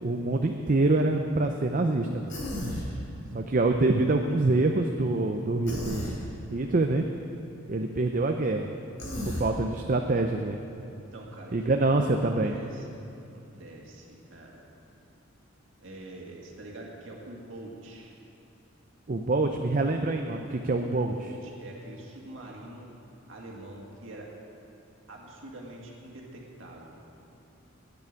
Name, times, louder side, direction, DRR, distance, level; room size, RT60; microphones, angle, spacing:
voice 1, 0.0-2.4 3.3-6.2 6.5-7.0 7.7-8.7 9.3-10.6 11.5-12.5 19.1-21.1, right 2 dB, 40° right, 4 dB, 0.5 m, -25 dB
Human voice, 2.3-2.9 5.6-6.1 9.0-9.5, left 1 dB, 70° left, 3.6 m, -33 dB
voice 2, 11.1-11.5 11.8-12.0 12.4-13.0 13.3-14.6 15.8-18.2 20.8-22.9 23.3-24.3 25.1-27.0, right 1 dB, 70° right, -2 dB, 2.1 m, -45 dB
9.3 x 8.6 x 9.4 m, 2.8 s
head